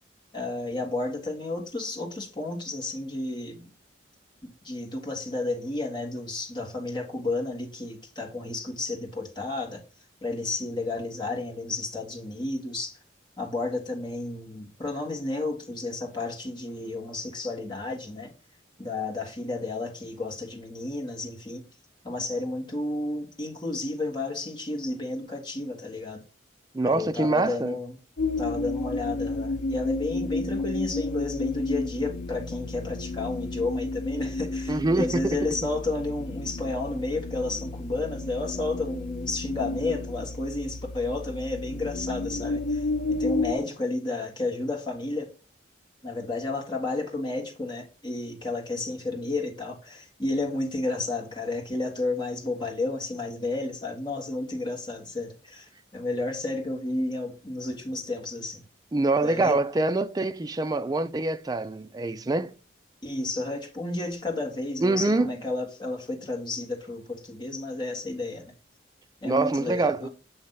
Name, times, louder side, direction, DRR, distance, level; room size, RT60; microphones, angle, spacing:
voice 1, 0.3-3.6 4.6-9.8 10.2-13.0 13.4-18.3 18.8-21.6 22.0-26.2 26.8-27.9 28.4-45.3 46.0-58.6 59.2-59.6 63.0-68.5 69.2-70.1, left 2 dB, 25° left, 1.7 m, -32 dB
voice 2, 26.7-27.8 34.7-35.4 58.9-62.5 64.8-65.3 69.2-70.1, right 2 dB, 20° right, 0.3 m, -25 dB
sound 1, 28.2-43.5, left 2 dB, 85° left, 0.6 m, -32 dB
7.9 x 3.1 x 5.5 m
head